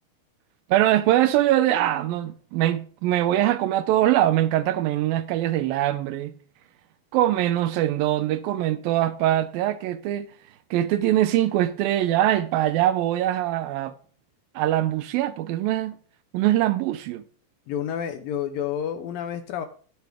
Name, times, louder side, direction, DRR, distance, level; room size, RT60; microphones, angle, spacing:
voice 1, 0.7-6.3 7.1-10.3 10.7-13.9 14.6-16.0 16.3-17.2, right 13 dB, 85° right, 2.0 m, -22 dB
voice 2, 17.7-19.7, left 9 dB, 80° left, 2.1 m, -29 dB
13.0 x 10.5 x 3.5 m
omnidirectional pair, 4.9 m